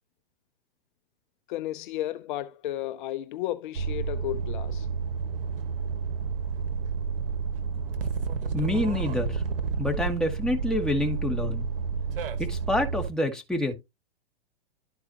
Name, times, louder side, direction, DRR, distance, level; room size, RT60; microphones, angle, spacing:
voice 1, 1.5-4.9, left 14 dB, 55° left, 0.7 m, -33 dB
sound 1, 3.7-13.1, right 5 dB, 65° right, 1.5 m, -30 dB
voice 2, 8.5-9.4 9.8-11.7 12.4-13.7, left 1 dB, ahead, 1.9 m, -27 dB
12.5 x 4.7 x 2.9 m
hypercardioid pair, 120°, 30 cm